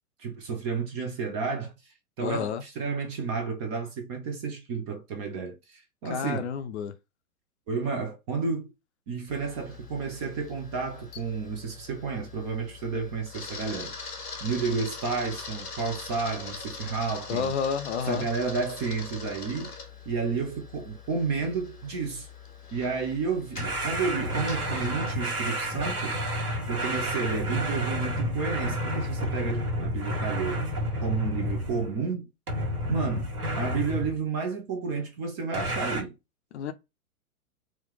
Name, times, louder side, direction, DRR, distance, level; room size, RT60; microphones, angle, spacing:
voice 1, 0.2-6.5 7.7-8.7 9.1-17.5 18.0-19.7 20.1-22.3 22.7-26.3 26.7-30.6 31.0-32.3 32.9-33.3 33.6-36.2, right 5 dB, 20° right, 0.4 m, -31 dB
voice 2, 2.2-2.6 6.1-6.9 17.3-18.3 36.5-36.7, left 7 dB, 50° left, 0.6 m, -30 dB
Camera, 9.3-24.9, left 5 dB, 85° left, 1.0 m, -43 dB
sound 1, 23.6-32.0 32.5-34.2 35.5-36.0, equal, 75° right, 1.5 m, -30 dB
4.2 x 2.3 x 3.0 m
figure-of-eight pair, 105°, 45 cm